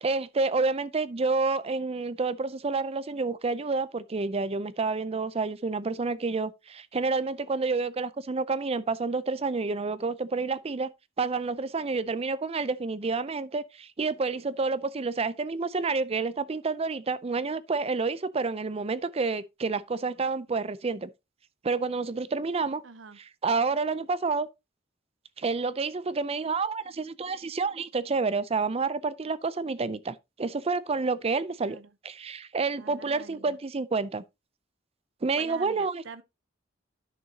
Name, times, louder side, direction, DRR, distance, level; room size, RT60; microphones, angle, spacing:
voice 1, 0.0-10.9 11.2-21.1 21.6-22.8 23.2-24.5 25.4-31.8 32.0-34.2 35.2-36.0, right 4 dB, 30° right, 0.5 m, -29 dB
voice 2, 22.8-23.2 31.6-31.9 32.8-33.6 35.4-36.2, right 4 dB, 85° right, 0.7 m, -45 dB
11.0 x 6.4 x 2.8 m
head